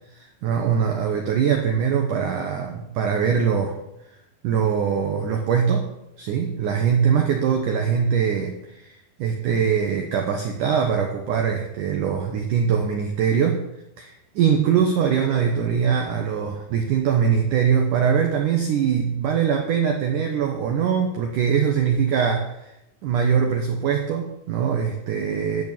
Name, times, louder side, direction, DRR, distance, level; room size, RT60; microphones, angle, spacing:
voice 1, 0.1-3.8 4.4-5.9 6.2-13.6 14.0-22.7 23.0-25.6, right 7 dB, 75° right, 3 dB, 1.9 m, -22 dB
11.5 x 6.4 x 8.9 m, 0.87 s
omnidirectional pair, 5.2 m